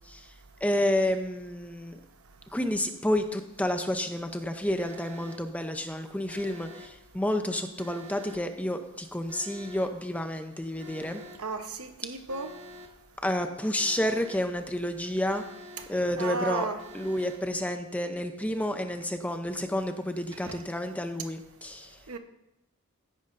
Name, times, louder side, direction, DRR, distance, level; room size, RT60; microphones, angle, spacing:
voice 1, 0.6-2.0 2.5-11.2 13.2-15.4 15.9-16.7 16.9-22.0, left 1 dB, 5° left, 0.6 m, -30 dB
Alarm, 4.8-5.4 6.3-6.9 7.8-8.4 9.3-9.9 10.8-11.4 12.3-12.9 13.8-14.4 15.3-15.9 16.8-17.4, equal, 60° right, 1.7 m, -46 dB
voice 2, 11.4-12.5 16.2-16.8 20.4-20.5 22.1-22.2, right 4 dB, 90° right, 1.0 m, -33 dB
15.5 x 9.5 x 2.6 m
head